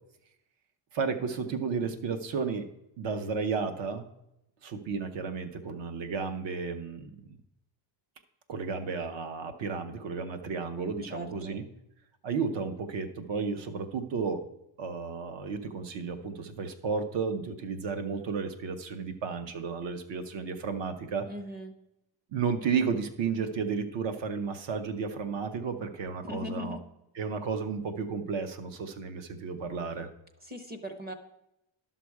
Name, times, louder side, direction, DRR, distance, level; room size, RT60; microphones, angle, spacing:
voice 1, 0.9-2.7 3.0-4.0 4.6-7.3 8.5-11.6 12.2-14.4 14.8-21.3 22.3-26.8 27.2-30.1, right 5 dB, 60° right, 9 dB, 1.0 m, -33 dB
voice 2, 11.1-11.5 21.3-21.7 26.2-26.8 30.4-31.1, left 1 dB, 20° right, 7 dB, 0.7 m, -39 dB
11.5 x 5.9 x 4.7 m, 0.85 s
cardioid pair, 175°, 49 cm